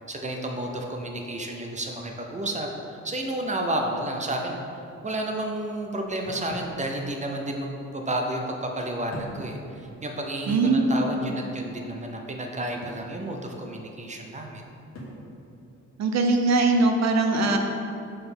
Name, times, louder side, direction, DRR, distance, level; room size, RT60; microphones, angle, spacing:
voice 1, 0.1-4.6 5.0-14.6, right 1 dB, 25° right, 2 dB, 0.5 m, -31 dB
sound 1, 6.2-6.8 7.9-8.0 9.1-9.5 9.9-10.0 10.5-10.8 12.8-13.1 15.0-15.3, equal, 60° left, 1.4 m, -40 dB
voice 2, 10.5-10.8 16.0-17.6, right 3 dB, 65° right, 4 dB, 0.7 m, -21 dB
5.4 x 4.0 x 6.0 m, 2.7 s
wide cardioid pair, 170°, 30 cm